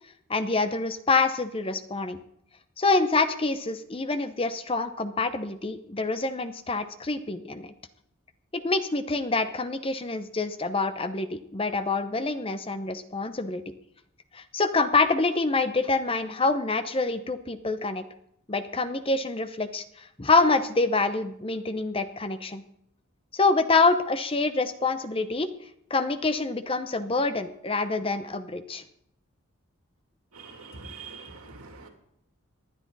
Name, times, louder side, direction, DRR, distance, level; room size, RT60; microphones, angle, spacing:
voice 1, 0.3-2.2 2.8-7.7 8.5-13.6 14.3-18.0 18.5-22.6 23.3-25.5 25.9-28.8, left 3 dB, 25° left, 10 dB, 0.7 m, -26 dB
voice 2, 30.3-31.9, right 4 dB, 85° right, 2 dB, 2.9 m, -44 dB
19.0 x 10.5 x 4.0 m, 0.72 s
head